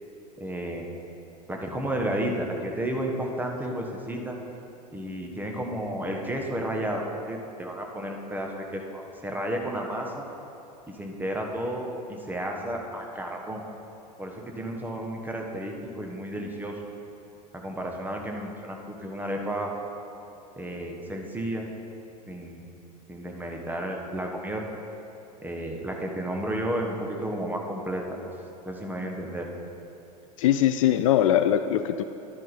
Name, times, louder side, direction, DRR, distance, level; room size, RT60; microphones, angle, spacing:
voice 1, 0.4-0.9 1.5-4.4 4.9-10.3 10.9-13.6 14.2-16.8 17.5-19.7 20.6-21.7 22.3-22.7 23.1-24.8 25.4-28.2 28.6-29.5, right 1 dB, 10° right, 1 dB, 1.2 m, -32 dB
voice 2, 30.4-32.0, left 11 dB, 50° left, 10 dB, 0.4 m, -21 dB
11.0 x 10.5 x 4.3 m, 2.9 s
figure-of-eight pair, 85°, 21 cm